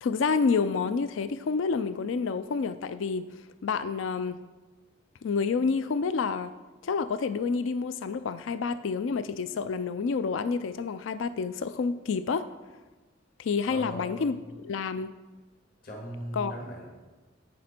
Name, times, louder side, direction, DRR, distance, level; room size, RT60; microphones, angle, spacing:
voice 1, 0.0-3.3 3.6-4.4 5.2-6.5 6.8-12.5 13.4-14.3 14.6-15.1 16.4-16.5, left 5 dB, 80° left, 13 dB, 0.4 m, -28 dB
voice 2, 13.7-14.4 15.8-16.9, equal, 50° left, -1 dB, 1.9 m, -39 dB
11.0 x 8.6 x 4.3 m, 1.3 s
head